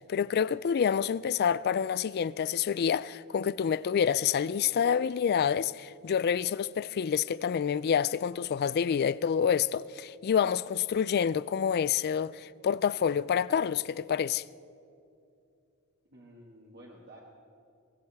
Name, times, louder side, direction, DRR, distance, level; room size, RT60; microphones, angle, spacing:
voice 1, 0.1-14.4, left 7 dB, 50° left, 0.3 m, -28 dB
voice 2, 16.1-17.2, right 1 dB, 50° right, 1.8 m, -51 dB
22.5 x 18.0 x 3.5 m
head